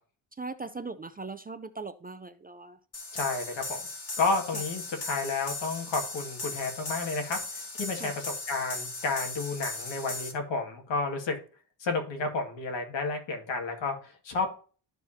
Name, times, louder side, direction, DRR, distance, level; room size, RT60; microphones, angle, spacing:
voice 1, 0.3-2.8 4.5-4.6 8.0-8.1, right 3 dB, 20° right, 10 dB, 0.4 m, -39 dB
sound 1, 2.9-10.3, left 2 dB, 35° left, 1.9 m, -38 dB
voice 2, 3.1-3.9 4.2-11.4 11.8-14.5, left 3 dB, 80° left, 3 dB, 2.2 m, -31 dB
12.5 x 4.7 x 2.8 m, 0.39 s
cardioid pair, 125°, 44 cm